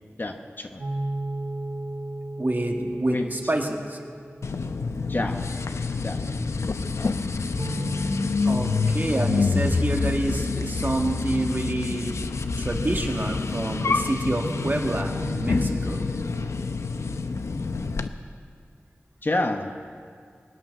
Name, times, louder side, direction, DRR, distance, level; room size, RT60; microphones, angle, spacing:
voice 1, 0.2-0.8 3.1-3.5 5.1-5.4 6.0-6.2 19.2-19.7, left 2 dB, 45° left, 4 dB, 1.0 m, -28 dB
sound 1, 0.8-4.9 7.6-11.8 14.4-16.5, right 1 dB, 70° right, 1.6 m, -36 dB
voice 2, 2.4-4.0 8.5-12.1 12.6-16.1, right 1 dB, 40° right, 2 dB, 1.9 m, -28 dB
sound 2, 4.4-18.1, left 4 dB, 90° left, 0.6 m, -27 dB
23.5 x 9.3 x 6.5 m, 2.2 s
wide cardioid pair, 55°, 5 cm